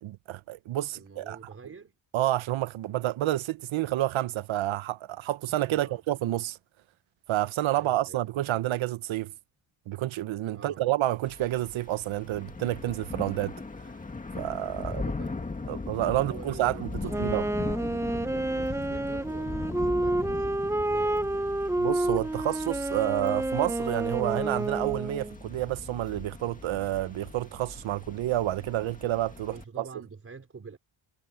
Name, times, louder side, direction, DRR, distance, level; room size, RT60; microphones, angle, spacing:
voice 1, 0.0-1.4 2.1-6.6 7.3-9.3 9.9-13.6 14.4-15.0 15.7-16.9 17.2-17.4 21.8-29.8, right 14 dB, 75° right, 0.9 m, -29 dB
voice 2, 0.9-2.0 5.7-6.0 7.7-8.7 10.5-10.8 14.8-15.6 16.1-21.5 29.4-30.8, right 5 dB, 30° right, 5.0 m, -47 dB
Thunder / Rain, 11.2-29.6, left 3 dB, 15° left, 1.9 m, -39 dB
Wind instrument woodwind instrument, 17.1-25.4, right 1 dB, 5° right, 0.6 m, -29 dB
wide cardioid pair, 170°, 47 cm